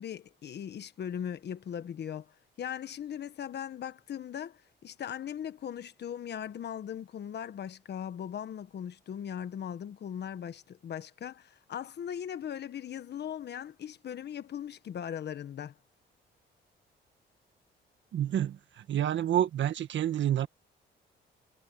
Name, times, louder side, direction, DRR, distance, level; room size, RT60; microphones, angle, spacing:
voice 1, 0.0-15.8, left 9 dB, 60° left, 1.4 m, -39 dB
voice 2, 18.1-20.5, right 11 dB, 70° right, 1.7 m, -29 dB
cardioid pair, 90°, 20 cm